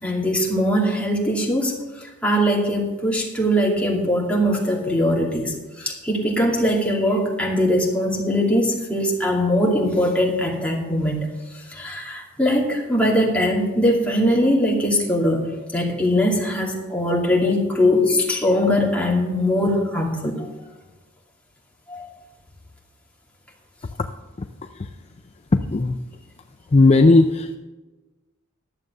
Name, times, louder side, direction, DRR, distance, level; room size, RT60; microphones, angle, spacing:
voice 1, 0.0-15.4 15.7-20.5 21.9-22.1, equal, 5° left, -3 dB, 2.5 m, -21 dB
voice 2, 24.4-25.0 25.5-26.0 26.7-27.5, left 2 dB, 30° left, 7 dB, 0.4 m, -17 dB
12.0 x 7.4 x 6.7 m, 1.2 s
head